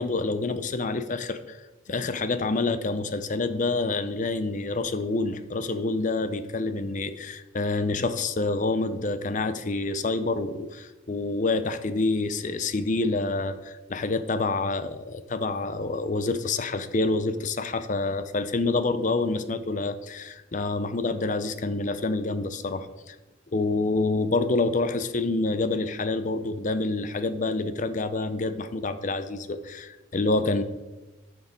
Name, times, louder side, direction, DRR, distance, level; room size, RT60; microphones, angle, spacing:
voice 1, 0.0-1.6 1.9-23.2 23.5-30.6, left 3 dB, 40° left, 11 dB, 0.5 m, -27 dB
10.5 x 6.4 x 3.9 m, 1.1 s
head